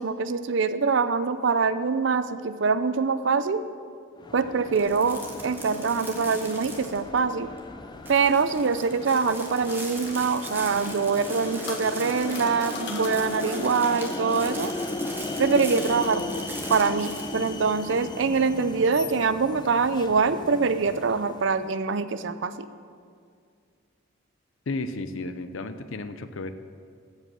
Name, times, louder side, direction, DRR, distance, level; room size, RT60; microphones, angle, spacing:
voice 1, 0.0-3.6 4.3-7.5 8.1-14.7 15.4-16.2 16.7-22.7, right 5 dB, 65° right, 12 dB, 0.5 m, -24 dB
sound 1, 4.2-21.7, left 2 dB, 20° left, 0.4 m, -36 dB
sound 2, 4.7-7.3 7.6-7.7 8.0-17.5, right 2 dB, 10° right, 1.2 m, -41 dB
sound 3, 7.9-10.2 11.2-14.0, left 5 dB, 60° left, 1.2 m, -43 dB
voice 2, 24.7-26.5, left 2 dB, 80° left, 11 dB, 0.6 m, -33 dB
14.5 x 5.4 x 6.2 m, 2.2 s
head